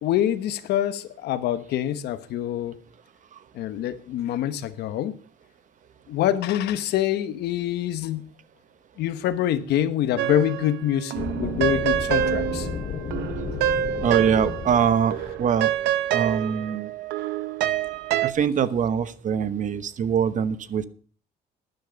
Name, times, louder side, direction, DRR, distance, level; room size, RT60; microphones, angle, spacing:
voice 1, 0.0-2.8 3.5-5.1 6.1-8.2 9.0-12.7, left 11 dB, 75° left, 1.1 m, -25 dB
sound 1, 10.2-10.8 11.1-14.8 15.1-18.3, right 12 dB, 85° right, 0.8 m, -26 dB
sound 2, 11.2-15.9, left 5 dB, 50° left, 2.6 m, -33 dB
voice 2, 14.0-15.7 16.1-16.9 18.2-20.8, right 8 dB, 50° right, 1.1 m, -23 dB
12.0 x 10.5 x 5.2 m
cardioid pair, 110°, 17 cm